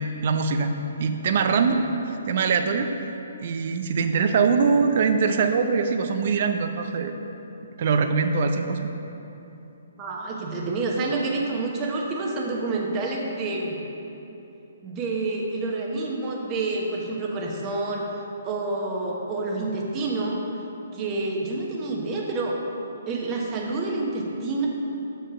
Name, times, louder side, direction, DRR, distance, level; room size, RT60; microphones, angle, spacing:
voice 1, 0.2-0.7 1.0-1.8 2.3-2.9 3.4-7.1 7.8-8.9, right 5 dB, 55° right, 7 dB, 0.6 m, -22 dB
voice 2, 10.0-13.8 14.8-18.1 18.4-20.4 20.9-22.6 23.1-24.7, right 3 dB, 25° right, -1 dB, 1.1 m, -28 dB
7.2 x 5.6 x 4.9 m, 2.9 s
hypercardioid pair, 145°, 0 cm